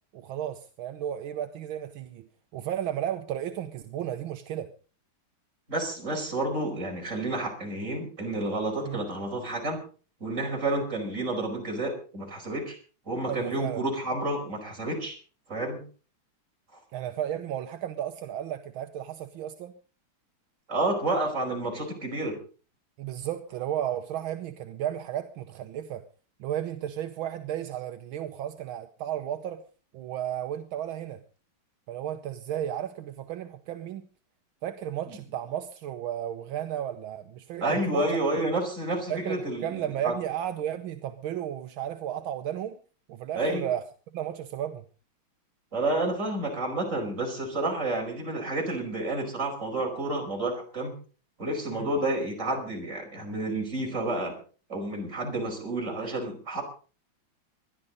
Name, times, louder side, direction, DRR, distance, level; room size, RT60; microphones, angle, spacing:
voice 1, 0.1-4.7 8.8-9.0 13.3-13.8 16.9-19.7 23.0-26.0 26.4-29.6 29.9-31.2 31.9-34.0 34.6-38.2 39.1-42.8 43.1-44.8 51.7-51.9, right 11 dB, 80° right, 1.7 m, -34 dB
voice 2, 5.7-9.8 10.2-12.8 13.1-15.2 15.5-15.8 20.7-22.4 35.1-35.2 37.6-40.1 43.4-43.7 45.7-50.9 51.4-54.4 54.7-56.6, right 2 dB, 35° right, 5.3 m, -30 dB
21.0 x 12.5 x 3.9 m
omnidirectional pair, 2.2 m